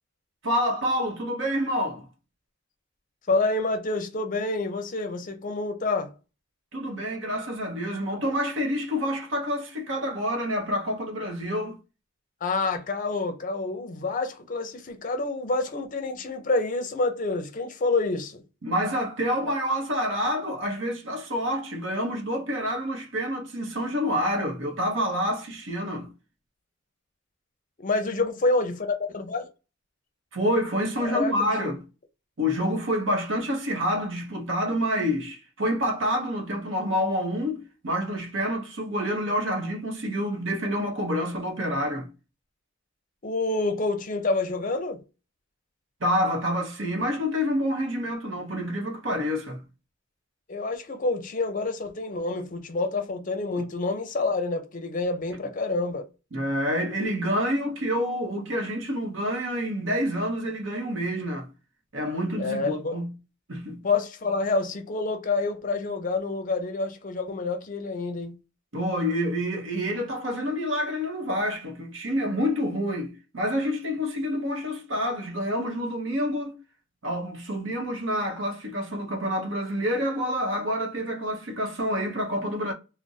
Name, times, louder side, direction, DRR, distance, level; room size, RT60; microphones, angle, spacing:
voice 1, 0.4-2.1 6.7-11.8 18.6-26.1 30.3-31.8 32.4-42.1 46.0-49.6 53.6-53.7 56.3-61.5 61.9-63.1 63.5-63.8 68.7-76.6 77.0-82.7, equal, 70° right, 0.8 m, -28 dB
voice 2, 3.3-6.1 12.4-18.4 27.8-29.5 31.0-31.7 43.2-45.0 50.5-56.1 62.4-63.0 63.8-68.4, left 3 dB, 40° left, 0.5 m, -28 dB
2.5 x 2.0 x 3.9 m
head